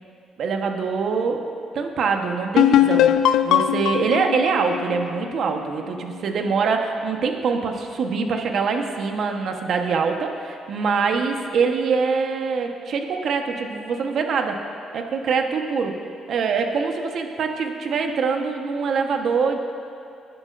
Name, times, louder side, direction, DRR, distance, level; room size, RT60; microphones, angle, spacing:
voice 1, 0.4-1.4 1.7-3.1 3.4-14.6 14.9-16.0 16.3-19.6, right 5 dB, 65° right, 4 dB, 1.1 m, -24 dB
sound 1, 2.6-6.1, left 11 dB, 85° left, 0.3 m, -20 dB
20.5 x 10.5 x 2.6 m, 2.4 s
cardioid pair, 90°, 0 cm